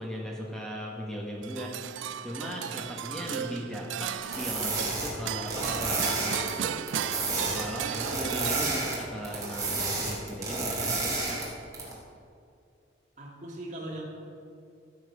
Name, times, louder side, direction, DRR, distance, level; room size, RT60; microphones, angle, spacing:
voice 1, 0.0-6.7 7.5-11.4, equal, 5° left, -3 dB, 1.3 m, -38 dB
sound 1, 1.4-9.1, right 9 dB, 85° right, 0.4 m, -35 dB
sound 2, 4.2-6.5 6.8-9.0 9.2-11.5 11.7-11.9, right 3 dB, 20° right, 2.8 m, -31 dB
voice 2, 13.2-14.0, right 1 dB, 40° right, -2 dB, 2.2 m, -39 dB
15.5 x 7.4 x 4.9 m, 2.4 s
head